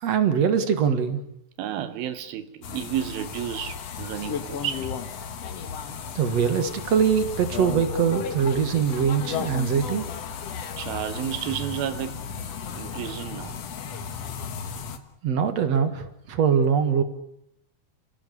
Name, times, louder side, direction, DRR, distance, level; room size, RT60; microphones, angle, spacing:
voice 1, 0.0-1.2 6.2-10.1 15.2-17.0, right 7 dB, 50° right, 2.5 m, -22 dB
voice 2, 1.6-4.9 10.8-12.3 12.8-13.6, right 11 dB, 80° right, 2.9 m, -31 dB
sound 1, 2.6-15.0, left 6 dB, 55° left, 2.1 m, -34 dB
29.5 x 16.5 x 8.5 m
omnidirectional pair, 4.3 m